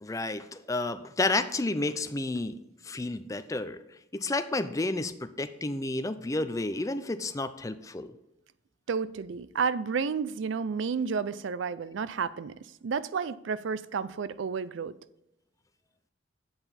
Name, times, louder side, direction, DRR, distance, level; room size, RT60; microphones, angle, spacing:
voice 1, 0.0-2.5 2.8-3.8 4.1-8.1, left 2 dB, 15° left, 0.4 m, -31 dB
voice 2, 8.9-12.5 12.8-15.0, right 5 dB, 75° right, 0.4 m, -31 dB
8.8 x 7.8 x 4.2 m
head